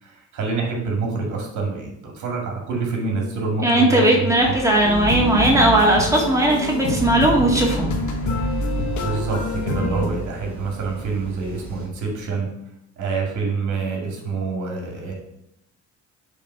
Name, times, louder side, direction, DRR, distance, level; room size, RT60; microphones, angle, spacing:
voice 1, 0.0-4.5 9.0-12.5 13.0-15.1, right 4 dB, 70° right, 0 dB, 2.1 m, -27 dB
voice 2, 3.6-7.9, right 1 dB, 10° right, -1 dB, 1.9 m, -17 dB
sound 1, 4.4-11.9, right 3 dB, 30° right, 2.2 m, -38 dB
sound 2, 4.8-10.1, left 1 dB, 75° left, 1.3 m, -25 dB
6.5 x 3.3 x 5.7 m, 0.79 s
cardioid pair, 90°, 30 cm